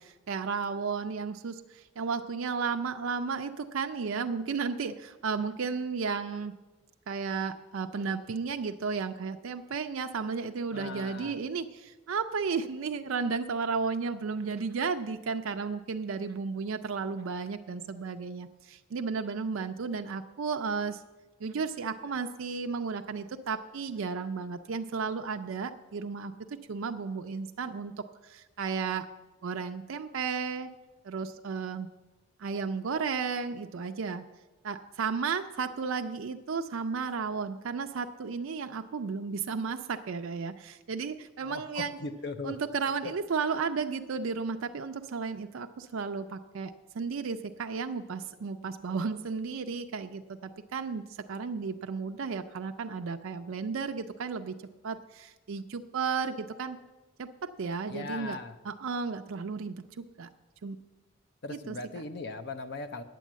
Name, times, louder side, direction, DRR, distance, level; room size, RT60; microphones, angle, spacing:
voice 1, 0.0-6.5 7.1-21.0 21.4-26.3 26.7-29.1 29.4-30.7 31.0-31.9 32.4-34.2 34.6-42.0 42.4-54.6 54.8-56.8 57.2-58.4 58.6-60.3 60.6-60.8 61.5-61.8, right 5 dB, 90° right, 7 dB, 0.5 m, -33 dB
voice 2, 10.7-11.4 41.5-42.6 43.0-43.1 57.9-58.5 61.4-63.0, left 3 dB, 55° left, 9 dB, 0.6 m, -39 dB
9.1 x 9.1 x 7.4 m, 1.2 s
head